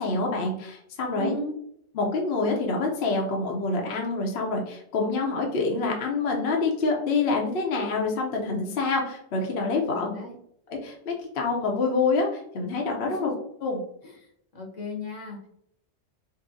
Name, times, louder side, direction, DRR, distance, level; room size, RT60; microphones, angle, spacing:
voice 1, 0.0-1.4 1.9-10.1 10.7-13.3 13.6-13.8, left 3 dB, 55° left, 0 dB, 0.9 m, -26 dB
voice 2, 1.1-1.5 9.9-10.3 13.1-13.3 14.0-15.5, left 1 dB, 75° left, -1 dB, 1.4 m, -36 dB
5.4 x 2.1 x 2.6 m, 0.70 s
omnidirectional pair, 1.3 m